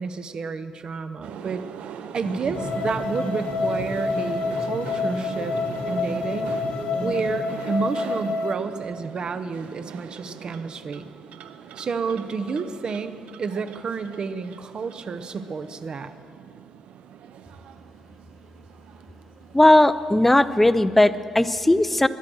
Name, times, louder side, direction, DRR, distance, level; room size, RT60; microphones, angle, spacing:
voice 1, 0.0-1.6 2.1-5.6 5.9-6.6 7.0-11.1 11.8-16.1, right 5 dB, 45° right, 11 dB, 0.9 m, -30 dB
sound 1, 1.2-20.3, right 8 dB, 85° right, 0.7 m, -41 dB
sound 2, 2.1-7.3, equal, 65° left, 3.9 m, -34 dB
sound 3, 2.5-8.5, left 4 dB, 85° left, 1.6 m, -28 dB
voice 2, 19.5-22.1, left 1 dB, 10° left, 13 dB, 0.5 m, -17 dB
21.5 x 10.5 x 6.3 m, 2.4 s
cardioid pair, 110°, 2 cm